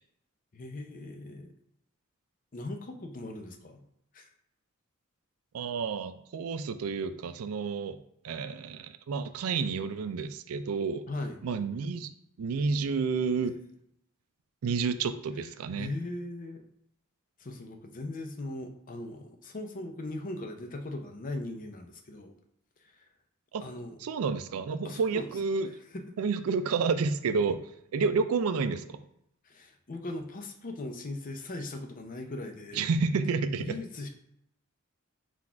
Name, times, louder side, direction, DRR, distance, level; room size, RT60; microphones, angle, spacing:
voice 1, 0.5-1.5 2.5-3.8 4.1-4.3 11.1-11.3 15.8-16.6 17.4-22.3 22.8-23.0 23.6-23.9 24.8-25.3 25.9-26.0 29.4-32.8 33.6-34.1, left 2 dB, 40° left, 5 dB, 0.6 m, -39 dB
voice 2, 5.5-8.0 8.2-11.0 11.4-12.1 12.4-13.5 14.6-15.9 23.5-23.7 24.0-25.7 26.2-29.0 32.7-33.8, right 5 dB, 90° right, 11 dB, 0.4 m, -30 dB
4.1 x 2.4 x 4.4 m, 0.77 s
head